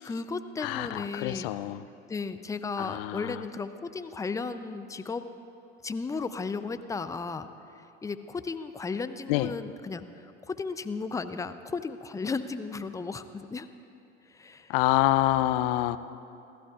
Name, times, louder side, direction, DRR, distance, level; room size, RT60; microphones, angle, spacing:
voice 1, 0.0-1.5 2.1-5.2 5.8-7.5 8.0-13.7 14.3-14.7, left 4 dB, 10° left, 11 dB, 0.5 m, -35 dB
voice 2, 0.6-1.8 2.8-3.4 9.3-9.5 14.7-16.0, left 15 dB, 55° left, 14 dB, 0.6 m, -26 dB
28.5 x 15.0 x 2.5 m, 2.7 s
figure-of-eight pair, 70°, 36 cm